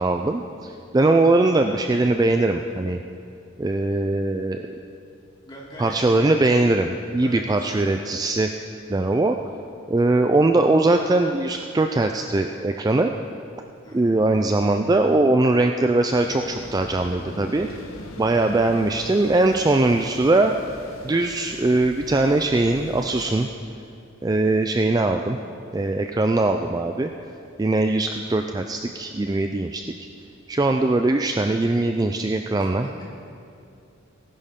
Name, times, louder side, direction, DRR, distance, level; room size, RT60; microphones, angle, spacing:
voice 1, 0.0-3.0 3.6-4.6 5.8-8.5 8.9-9.4 9.9-13.1 13.9-17.7 18.2-20.5 21.0-23.5 24.2-25.4 25.7-27.1 27.6-29.9 30.5-32.9, right 2 dB, 20° right, 5 dB, 0.3 m, -21 dB
voice 2, 5.4-6.3 7.2-8.0 13.8-14.2 32.6-33.0, equal, 20° left, -6 dB, 3.0 m, -42 dB
sound 1, 16.1-23.5, left 1 dB, 90° left, 1.3 m, -41 dB
18.5 x 10.5 x 3.7 m, 2.5 s
head